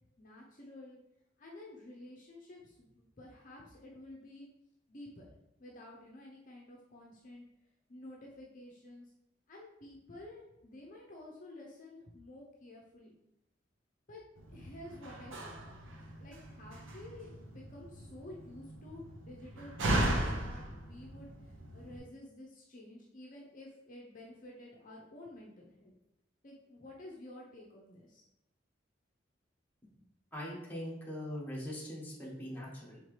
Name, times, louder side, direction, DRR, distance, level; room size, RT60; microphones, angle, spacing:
voice 1, 0.2-1.0 1.4-4.5 4.9-5.3 5.6-7.4 7.9-9.1 9.5-13.1 14.1-14.2 14.5-15.8 16.2-25.9 26.4-28.2, left 1 dB, 45° left, -2 dB, 0.7 m, -51 dB
Slam, 14.4-22.0, right 1 dB, 80° right, 0.8 m, -37 dB
voice 2, 30.3-33.0, equal, 10° left, -5 dB, 1.2 m, -41 dB
4.5 x 3.6 x 3.2 m, 0.87 s
head